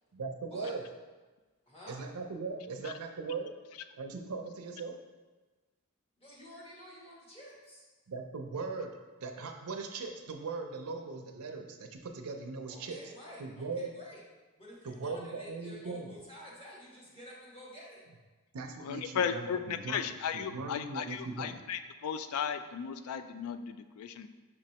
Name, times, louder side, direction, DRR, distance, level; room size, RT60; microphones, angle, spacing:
voice 1, 0.1-0.8 1.9-3.5 4.0-4.9 8.1-13.0 13.4-13.9 14.8-16.2 18.5-21.6, right 4 dB, 75° right, 4 dB, 0.5 m, -39 dB
voice 2, 1.6-2.0 6.2-7.8 12.7-14.2 14.6-18.0, equal, 25° left, -5 dB, 1.1 m, -50 dB
voice 3, 18.8-24.3, left 7 dB, 70° left, 11 dB, 0.3 m, -35 dB
5.9 x 3.1 x 2.8 m, 1.3 s
head